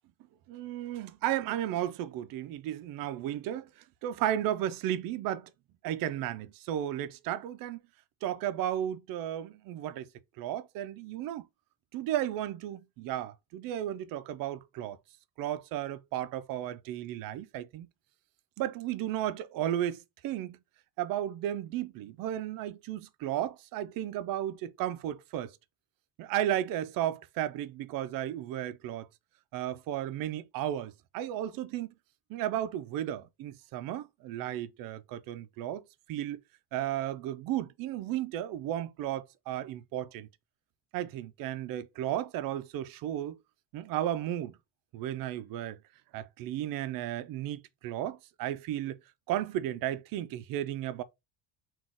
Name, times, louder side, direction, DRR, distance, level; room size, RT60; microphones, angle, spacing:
voice 1, 0.5-5.5 5.8-7.8 8.2-10.1 10.4-11.5 11.9-15.0 15.4-17.9 18.6-20.6 21.0-25.6 26.2-29.1 29.5-31.9 32.3-35.8 36.1-36.4 36.7-40.3 40.9-43.4 43.7-44.6 44.9-45.8 46.1-49.0 49.3-51.0, right 12 dB, 55° right, 0.4 m, -34 dB
4.0 x 2.4 x 3.5 m
cardioid pair, 165°, 42 cm